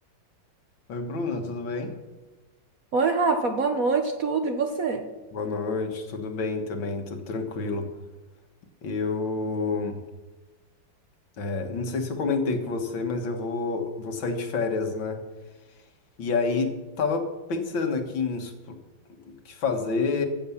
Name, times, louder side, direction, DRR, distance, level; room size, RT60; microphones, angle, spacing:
voice 1, 0.9-1.9 5.3-7.9 8.8-10.0 11.4-15.2 16.2-16.7 17.0-17.2 17.5-18.8 19.1-20.3, left 4 dB, 75° left, 4 dB, 2.2 m, -28 dB
voice 2, 2.9-5.0, right 4 dB, 55° right, 5 dB, 1.2 m, -24 dB
15.0 x 7.0 x 7.1 m, 1.2 s
omnidirectional pair, 2.1 m